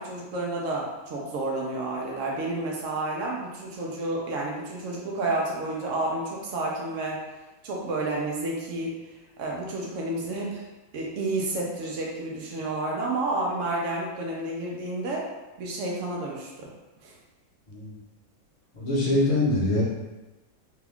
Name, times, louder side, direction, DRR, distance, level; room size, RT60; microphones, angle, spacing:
voice 1, 0.0-7.2 7.6-8.9 9.4-10.7 10.9-15.3 15.6-16.7 17.0-17.1, right 2 dB, 80° right, -2 dB, 0.7 m, -30 dB
voice 2, 18.7-19.8, left 1 dB, 30° left, -7 dB, 0.6 m, -23 dB
3.5 x 2.3 x 3.5 m, 1.1 s
omnidirectional pair, 2.0 m